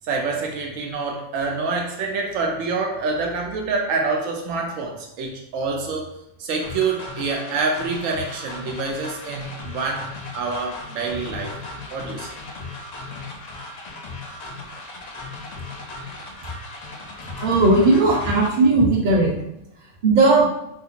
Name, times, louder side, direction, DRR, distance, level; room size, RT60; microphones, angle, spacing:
voice 1, 0.0-6.1 6.4-11.6 11.9-12.3, right 4 dB, 80° right, 1 dB, 1.0 m, -26 dB
sound 1, 6.6-18.5, left 3 dB, 80° left, 0.3 m, -36 dB
voice 2, 17.4-19.3 20.0-20.5, right 2 dB, 40° right, -3 dB, 0.8 m, -16 dB
3.6 x 2.8 x 2.4 m, 0.81 s
omnidirectional pair, 1.3 m